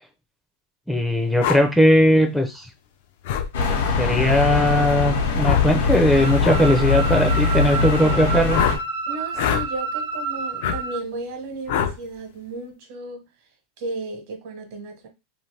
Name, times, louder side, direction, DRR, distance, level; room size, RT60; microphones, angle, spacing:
voice 1, 0.9-2.7 4.0-8.6, equal, ahead, 0.4 m, -19 dB
sound 1, 1.4-1.6 3.3-3.5 5.4-5.7 6.4-6.6 8.5-8.8 9.3-9.7 10.6-10.8 11.7-12.0, left 9 dB, 70° left, 0.5 m, -23 dB
sound 2, 3.5-8.8, left 4 dB, 85° left, 0.8 m, -22 dB
sound 3, 6.1-11.0, right 5 dB, 90° right, 0.6 m, -29 dB
voice 2, 9.1-13.3 13.8-15.1, right 2 dB, 60° right, 1.1 m, -34 dB
2.6 x 2.5 x 3.3 m
supercardioid pair, 130°, 0 cm